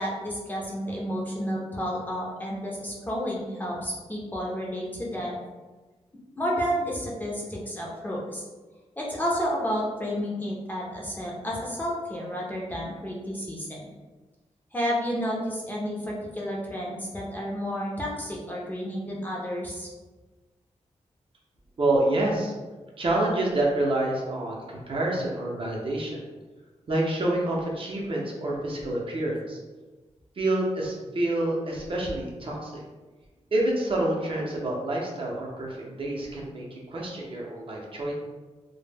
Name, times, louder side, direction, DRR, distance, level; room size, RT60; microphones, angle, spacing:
voice 1, 0.0-5.4 6.4-8.4 9.0-13.8 14.7-19.9, equal, 15° left, -4 dB, 0.5 m, -31 dB
voice 2, 21.8-22.5 23.0-26.2 26.9-29.6 30.4-32.8 33.5-38.1, right 1 dB, 45° right, -3 dB, 0.5 m, -27 dB
2.1 x 2.0 x 3.2 m, 1.2 s
wide cardioid pair, 115°, 12 cm